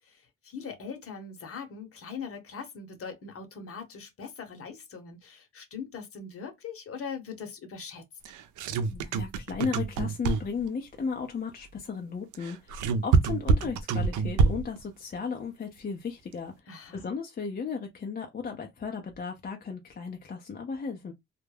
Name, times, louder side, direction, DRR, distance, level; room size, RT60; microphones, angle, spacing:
voice 1, 0.4-8.0 16.7-17.1, left 6 dB, 50° left, 0.9 m, -41 dB
sound 1, 8.2-10.7 12.3-14.8, right 4 dB, 80° right, 0.5 m, -26 dB
voice 2, 8.9-16.5 16.9-21.1, left 5 dB, 30° left, 0.5 m, -35 dB
2.2 x 2.0 x 3.1 m
cardioid pair, 90°, 30 cm